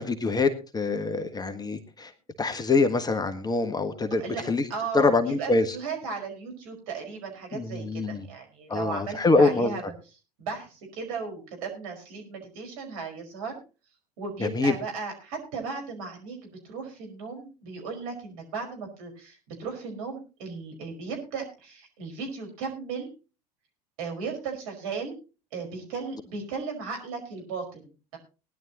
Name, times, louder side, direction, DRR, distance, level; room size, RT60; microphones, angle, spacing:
voice 1, 0.0-2.1 2.4-4.2 4.5-4.6 4.9-5.6 7.5-8.2 8.7-9.7 14.4-14.7, left 3 dB, 20° left, 8 dB, 1.5 m, -24 dB
voice 2, 4.7-9.9 10.4-13.6 14.2-23.1 24.0-25.1 25.5-28.2, right 5 dB, 65° right, 3 dB, 5.2 m, -36 dB
19.5 x 11.0 x 3.0 m, 0.32 s
figure-of-eight pair, 80°, 20 cm